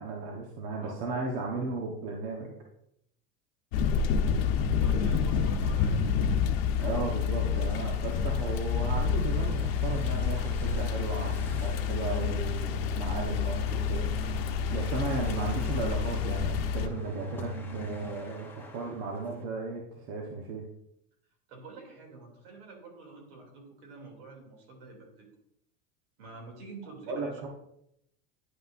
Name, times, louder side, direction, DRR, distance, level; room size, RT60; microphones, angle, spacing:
voice 1, 0.0-2.5 6.8-20.6 27.1-27.5, right 3 dB, 60° right, 0 dB, 1.2 m, -35 dB
sound 1, 3.7-16.9, left 7 dB, 80° left, 0.8 m, -29 dB
sound 2, 4.5-19.4, left 2 dB, 5° left, 0.8 m, -51 dB
voice 2, 4.7-6.0 21.5-25.3 26.2-27.4, right 3 dB, 85° right, 1 dB, 2.8 m, -47 dB
sound 3, 8.8-18.1, right 2 dB, 30° right, 0.7 m, -38 dB
10.0 x 5.6 x 2.6 m, 0.77 s
supercardioid pair, 150°, 29 cm